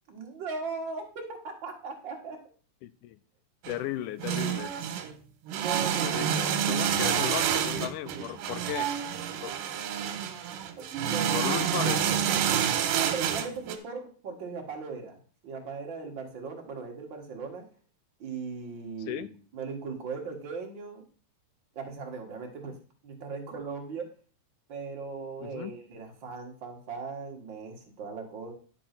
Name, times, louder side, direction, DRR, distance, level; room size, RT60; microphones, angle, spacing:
voice 1, 0.1-2.4 5.5-6.2 6.7-7.4 7.7-8.3 10.8-11.5 11.9-12.7 13.1-17.6 18.2-21.1 21.8-22.8 23.0-24.1 24.7-28.5, right 4 dB, 45° right, 2 dB, 1.8 m, -39 dB
voice 2, 2.8-3.2 3.7-4.7 6.0-8.9 9.4-9.5 11.3-12.0 19.1-19.3 25.4-25.7, left 13 dB, 85° left, 15 dB, 2.1 m, -35 dB
sound 1, 3.7-3.8 4.2-5.1 5.5-13.8, right 9 dB, 90° right, 2.5 m, -28 dB
10.5 x 4.6 x 5.8 m, 0.40 s
omnidirectional pair, 3.7 m